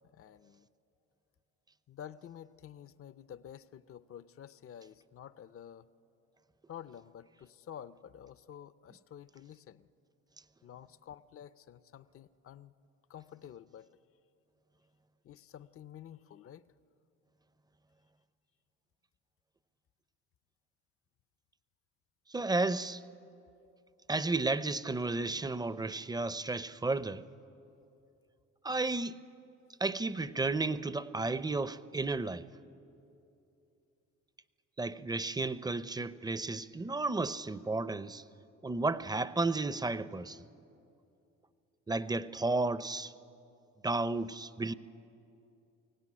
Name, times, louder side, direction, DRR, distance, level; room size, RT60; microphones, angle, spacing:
voice 1, 0.1-0.7 1.9-5.9 6.7-9.9 10.6-12.7 13.1-13.9 15.2-16.7, left 9 dB, 45° left, 0.6 m, -50 dB
voice 2, 22.3-23.0 24.1-27.2 28.6-29.2 29.8-32.5 34.8-38.2 38.6-40.4 41.9-43.1 43.8-44.7, right 3 dB, 15° right, 0.6 m, -33 dB
22.5 x 17.0 x 9.9 m
cardioid pair, 90°, 30 cm